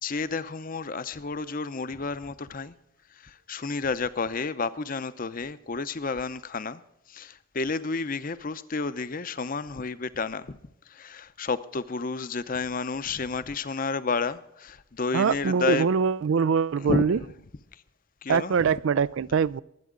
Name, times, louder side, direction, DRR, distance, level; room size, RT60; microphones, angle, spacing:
voice 1, 0.0-2.7 3.2-6.8 7.1-10.6 10.9-15.9 16.8-17.0 18.2-18.5, left 4 dB, 40° left, 0.7 m, -31 dB
voice 2, 15.1-17.2 18.3-19.6, right 6 dB, 70° right, 0.4 m, -23 dB
23.5 x 8.4 x 3.9 m
head